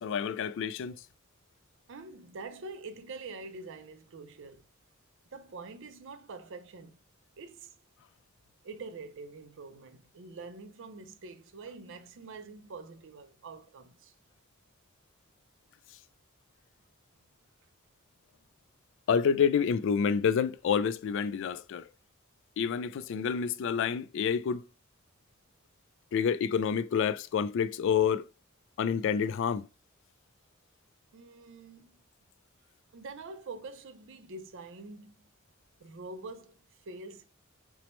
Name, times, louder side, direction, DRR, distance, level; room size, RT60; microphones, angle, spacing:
voice 1, 0.0-1.0 19.1-21.8 22.6-24.7 26.1-28.3 28.8-29.7, left 7 dB, 65° left, 0.3 m, -28 dB
voice 2, 1.9-4.7 5.3-7.0 7.4-7.7 8.6-14.1 31.1-31.9 32.9-35.2 35.8-36.5 36.9-37.2, right 3 dB, 65° right, 0.5 m, -45 dB
5.9 x 2.1 x 3.1 m
head